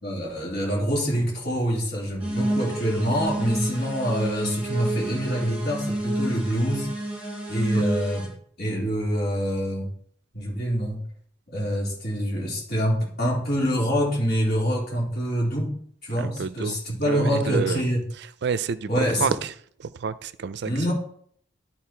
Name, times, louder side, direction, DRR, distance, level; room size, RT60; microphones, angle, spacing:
voice 1, 0.0-6.9 7.5-8.3 8.6-9.9 10.3-11.0 11.5-18.1 18.9-19.3 20.7-20.9, equal, 55° left, -4 dB, 3.5 m, -26 dB
sound 1, 2.2-8.3, right 1 dB, 10° right, 2.2 m, -29 dB
voice 2, 16.2-16.8 17.0-17.8 18.4-19.5 19.8-20.9, right 5 dB, 60° right, 16 dB, 0.4 m, -29 dB
12.5 x 4.2 x 4.4 m, 0.62 s
head